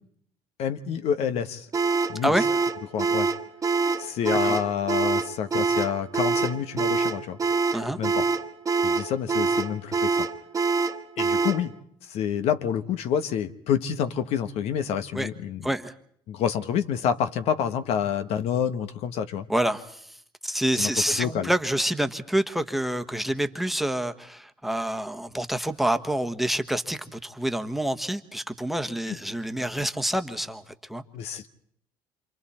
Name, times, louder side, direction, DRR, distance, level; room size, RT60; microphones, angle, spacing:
voice 1, 0.6-1.7 2.1-2.3 2.9-3.3 4.0-7.4 8.0-8.3 8.8-10.3 11.2-11.7 12.0-15.7 16.3-19.5 20.7-21.5 29.1-29.2 31.1-31.5, left 8 dB, 65° left, 10 dB, 1.2 m, -28 dB
sound 1, 1.7-11.7, right 4 dB, 30° right, 1.4 m, -25 dB
voice 2, 15.6-15.9 19.5-20.2 20.4-30.6 30.9-31.0, right 1 dB, ahead, 7 dB, 1.4 m, -27 dB
27.5 x 26.5 x 4.3 m, 0.66 s
supercardioid pair, 75°, 11 cm